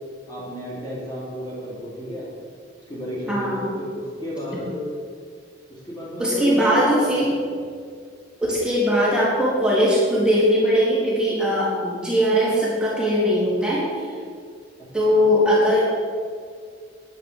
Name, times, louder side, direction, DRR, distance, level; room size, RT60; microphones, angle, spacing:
voice 1, 0.3-2.3 2.9-4.9 5.7-7.4 15.1-15.2, equal, 20° left, -7 dB, 3.3 m, -32 dB
voice 2, 3.3-3.7 6.2-7.4 8.5-14.1 14.9-15.8, equal, 5° right, -7 dB, 3.8 m, -20 dB
12.0 x 9.6 x 7.2 m, 2.1 s
head